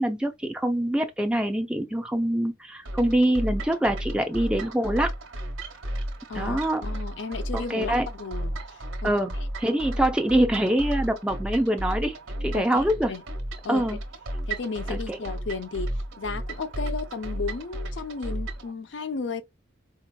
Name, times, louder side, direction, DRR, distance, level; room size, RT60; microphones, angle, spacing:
voice 1, 0.0-5.1 6.3-6.8 7.5-8.1 9.0-12.2 12.4-13.1 13.7-14.0 14.9-15.2, right 1 dB, 5° right, 0.5 m, -24 dB
sound 1, 2.8-18.7, right 1 dB, 90° right, 1.0 m, -33 dB
voice 2, 6.3-9.1 12.5-12.7 13.1-13.2 13.6-13.9 14.5-19.4, left 4 dB, 70° left, 0.5 m, -34 dB
4.1 x 2.8 x 2.2 m
head